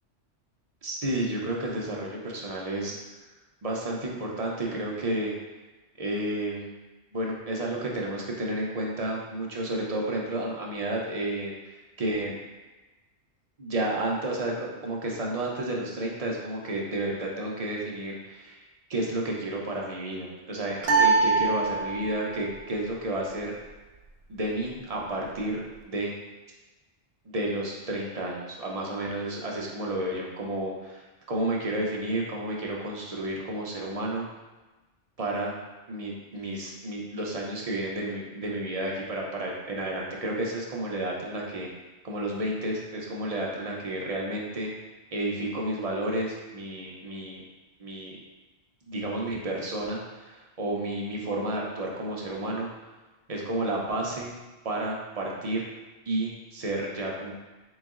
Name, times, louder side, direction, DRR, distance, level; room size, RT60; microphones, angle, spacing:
voice 1, 0.8-3.0 3.6-5.3 6.0-6.7 7.1-11.5 12.0-12.4 13.6-18.6 18.9-23.5 24.3-26.1 27.3-34.3 35.2-35.5 35.9-41.7 42.0-44.7 45.1-47.4 47.8-48.1 48.9-52.7 53.3-54.3 54.6-55.7 56.1-57.3, right 1 dB, 40° right, -2 dB, 0.6 m, -31 dB
sound 1, 20.8-22.3, right 4 dB, 65° right, 0.9 m, -23 dB
3.7 x 3.0 x 3.6 m, 1.2 s
omnidirectional pair, 1.2 m